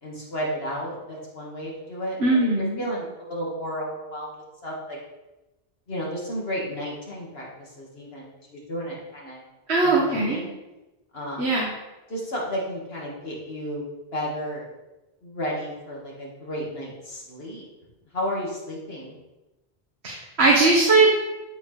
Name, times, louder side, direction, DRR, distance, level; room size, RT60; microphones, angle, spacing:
voice 1, 0.0-4.3 4.6-5.0 5.9-9.4 9.8-10.5 11.1-11.6 12.1-13.9 14.1-14.7 15.2-17.6 18.1-19.2, equal, 75° left, -4 dB, 2.4 m, -33 dB
voice 2, 2.2-2.8 9.7-10.4 11.4-11.7 20.0-21.2, right 3 dB, 85° right, -4 dB, 1.7 m, -19 dB
11.5 x 4.8 x 4.2 m, 1.0 s
omnidirectional pair, 1.1 m